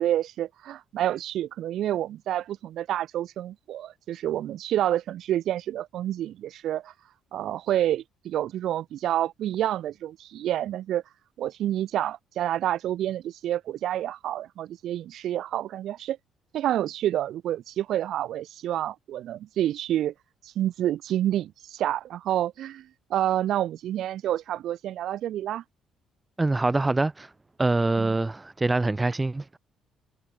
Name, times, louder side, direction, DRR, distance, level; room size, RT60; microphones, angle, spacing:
voice 1, 0.0-6.9 7.3-11.0 11.4-16.2 16.5-20.1 20.4-25.6 28.0-28.2, right 12 dB, 70° right, 5.7 m, -28 dB
voice 2, 26.4-27.3 27.6-29.6, right 2 dB, 15° right, 1.6 m, -24 dB
cardioid pair, 95°, 0 cm